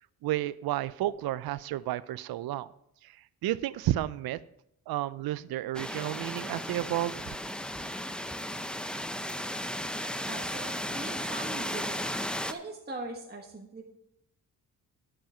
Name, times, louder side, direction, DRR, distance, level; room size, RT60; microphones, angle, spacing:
voice 1, 0.2-2.7 3.4-4.4 4.9-7.1, right 14 dB, 70° right, 18 dB, 0.5 m, -31 dB
sound 1, 5.7-12.5, equal, ahead, 0.6 m, -35 dB
voice 2, 10.3-12.0 12.5-13.9, right 3 dB, 25° right, 0 dB, 1.5 m, -41 dB
9.0 x 7.3 x 5.6 m, 0.77 s
cardioid pair, 75°, 37 cm